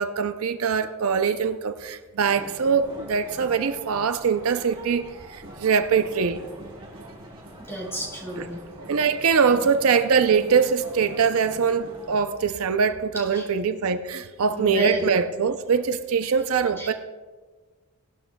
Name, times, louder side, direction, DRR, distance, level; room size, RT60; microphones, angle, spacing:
voice 1, 0.0-5.0 5.3-6.4 8.4-8.5 8.8-16.9, right 6 dB, 70° right, 0.5 m, -23 dB
sound 1, 2.2-12.2, right 1 dB, 25° right, 2.0 m, -43 dB
voice 2, 7.7-8.6 9.5-9.6 13.3-13.4 14.5-15.0 16.8-16.9, right 1 dB, 10° left, 4.1 m, -31 dB
18.5 x 12.0 x 2.2 m
head